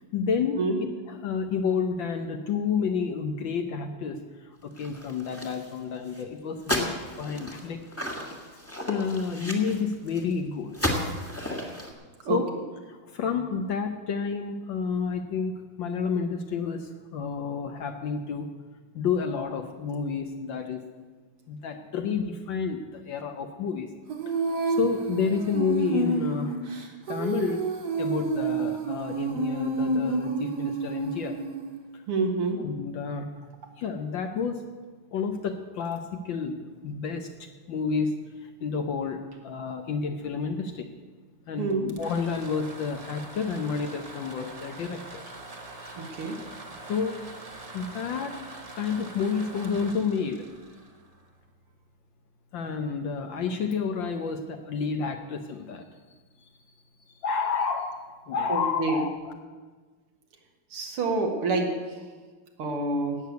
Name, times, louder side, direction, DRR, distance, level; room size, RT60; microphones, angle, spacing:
voice 1, 0.1-0.6 1.1-7.8 8.5-8.6 8.9-10.7 12.3-12.5 12.9-18.5 18.9-20.8 21.5-23.9 24.3-26.6 27.1-27.6 28.0-31.4 31.9-32.0 32.6-33.3 33.8-34.6 35.1-40.9 41.5-45.3 46.9-47.2 47.7-48.4 48.7-50.4 52.5-55.8 56.4-56.5 57.1-59.1, left 5 dB, 65° left, 5 dB, 1.5 m, -30 dB
sound 1, 4.8-5.8 6.1-6.2 6.6-10.3 10.7-11.9, left 1 dB, 5° left, 1.4 m, -33 dB
Female singing, 24.1-31.8, right 3 dB, 50° right, 2.1 m, -29 dB
voice 2, 32.1-32.6 41.6-41.9 46.0-46.4 58.5-59.0 60.7-61.7 62.6-63.2, right 3 dB, 80° right, 2 dB, 2.5 m, -27 dB
sound 2, 41.7-51.5, right 2 dB, 25° right, 0.9 m, -44 dB
17.5 x 6.7 x 8.2 m, 1.4 s
omnidirectional pair, 2.4 m